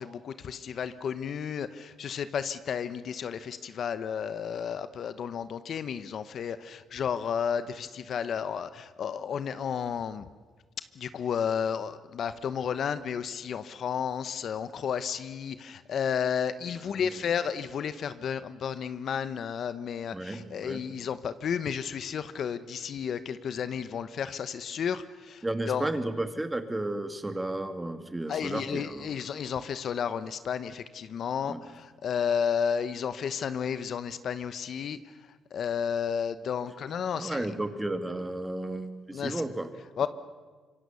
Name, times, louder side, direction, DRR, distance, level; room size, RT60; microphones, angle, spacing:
voice 1, 0.0-10.3 11.0-25.9 28.3-35.0 35.5-37.5 39.1-39.4 40.0-40.1, left 7 dB, 60° left, 12 dB, 1.0 m, -32 dB
voice 2, 16.8-17.2 20.1-20.8 25.4-29.2 31.4-31.6 37.2-39.7, right 1 dB, 15° right, 8 dB, 2.2 m, -33 dB
26.0 x 23.0 x 7.0 m, 1.4 s
cardioid pair, 90°, 0 cm